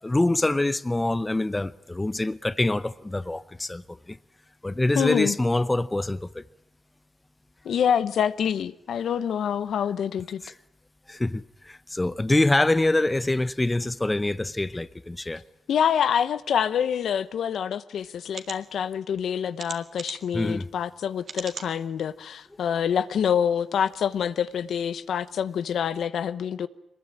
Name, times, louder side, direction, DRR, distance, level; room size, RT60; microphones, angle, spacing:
voice 1, 0.0-4.2 4.6-6.4 10.4-10.5 11.1-15.4 20.3-20.7, left 2 dB, 15° left, 0.8 m, -25 dB
voice 2, 4.9-5.4 7.6-10.4 15.7-26.7, left 8 dB, 80° left, 0.8 m, -26 dB
sound 1, 17.5-17.6 18.3-18.6 19.6-20.3 21.2-21.7 22.3-22.4 22.7-22.8, right 5 dB, 60° right, 2.1 m, -38 dB
22.5 x 20.5 x 8.9 m
cardioid pair, 75°, 0 cm